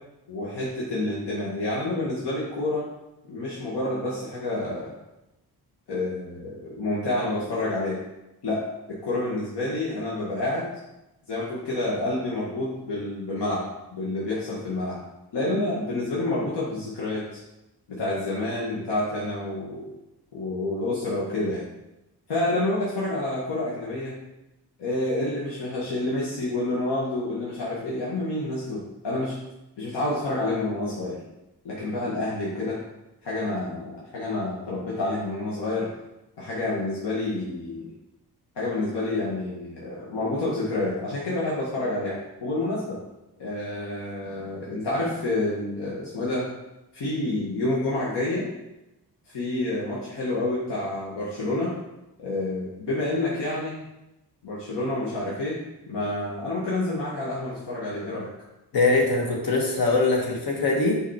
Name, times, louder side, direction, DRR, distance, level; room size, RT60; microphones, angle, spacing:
voice 1, 0.3-2.8 3.3-4.9 5.9-8.0 8.4-10.7 11.3-13.6 13.9-15.0 15.3-17.4 17.9-19.8 20.3-21.6 22.3-24.2 24.8-29.4 29.8-31.2 31.6-32.8 33.2-35.9 36.4-37.9 38.5-43.0 43.4-46.5 46.9-48.5 49.3-51.7 52.2-53.8 54.4-55.6 55.9-58.3, left 2 dB, 90° left, -7 dB, 1.7 m, -28 dB
voice 2, 58.7-61.0, left 3 dB, 65° left, 0 dB, 1.5 m, -22 dB
5.5 x 4.9 x 4.3 m, 0.95 s
wide cardioid pair, 170°, 40 cm